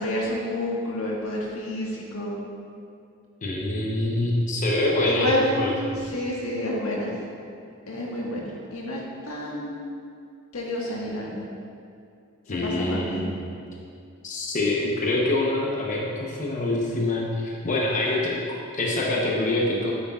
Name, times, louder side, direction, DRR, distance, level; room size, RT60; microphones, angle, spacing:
voice 1, 0.0-2.4 5.1-7.1 7.9-9.9 10.5-11.4 12.5-13.2, left 1 dB, 85° left, -3 dB, 1.5 m, -29 dB
voice 2, 3.4-5.7 12.5-13.3 14.2-19.9, left 2 dB, 35° left, -3 dB, 0.9 m, -25 dB
8.9 x 8.3 x 2.4 m, 2.4 s
head